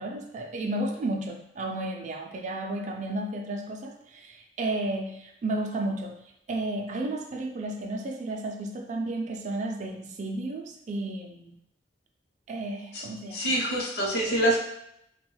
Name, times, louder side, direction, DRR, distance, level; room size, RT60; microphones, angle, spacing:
voice 1, 0.0-6.2 6.5-11.5 12.5-13.5, right 2 dB, 45° right, 3 dB, 0.4 m, -33 dB
voice 2, 13.3-14.6, right 1 dB, 65° left, -2 dB, 0.8 m, -25 dB
2.9 x 2.2 x 3.1 m, 0.77 s
head